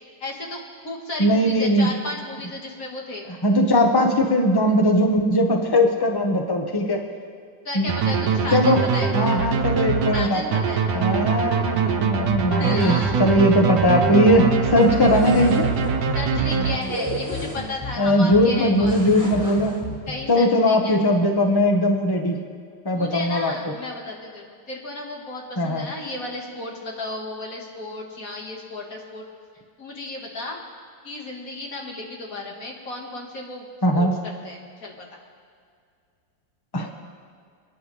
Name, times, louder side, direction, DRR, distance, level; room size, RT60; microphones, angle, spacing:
voice 1, 0.2-0.6 0.8-3.2 7.6-9.1 10.1-10.8 12.4-13.2 16.1-19.0 20.1-21.0 22.9-29.2 29.8-30.6 31.0-33.7 33.9-34.9, left 2 dB, 50° left, -1 dB, 2.2 m, -33 dB
voice 2, 1.2-1.9 3.4-7.0 7.7-7.9 8.5-8.8 9.1-10.4 10.9-15.7 18.0-19.7 20.3-22.4 22.8-23.5 25.6-25.9 33.8-34.1 36.7-36.9, left 1 dB, 15° left, 3 dB, 1.1 m, -19 dB
sound 1, 7.9-17.2, right 6 dB, 70° right, 1.5 m, -23 dB
sound 2, 12.3-20.3, left 2 dB, 30° left, 0.4 m, -34 dB
sound 3, 14.9-15.9 16.9-17.9 18.8-19.8, right 2 dB, 10° right, 1.6 m, -32 dB
28.5 x 10.0 x 3.4 m, 2.2 s
omnidirectional pair, 1.9 m